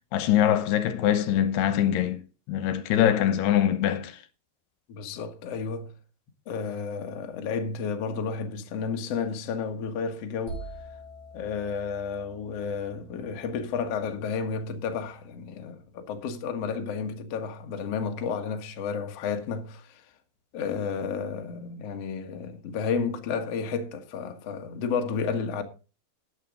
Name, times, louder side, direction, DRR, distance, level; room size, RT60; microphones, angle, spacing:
voice 1, 0.1-2.2 2.5-4.2, left 11 dB, 85° left, 3.0 m, -23 dB
voice 2, 4.9-5.9 6.5-10.6 11.3-20.0 20.5-25.6, left 5 dB, 50° left, 2.0 m, -32 dB
sound 1, 10.5-14.3, right 1 dB, 65° right, 4.2 m, -44 dB
14.0 x 9.3 x 3.8 m
omnidirectional pair, 4.6 m